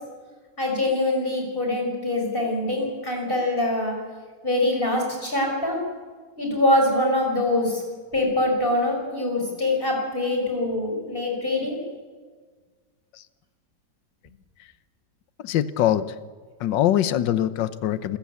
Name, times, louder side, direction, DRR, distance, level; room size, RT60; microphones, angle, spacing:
voice 1, 0.6-3.9 4.4-5.8 6.4-7.8 8.1-11.8, left 1 dB, 30° left, 1 dB, 6.0 m, -24 dB
voice 2, 15.4-16.1 16.6-18.2, left 11 dB, 80° left, 14 dB, 1.5 m, -23 dB
27.0 x 15.0 x 8.5 m, 1.5 s
omnidirectional pair, 1.9 m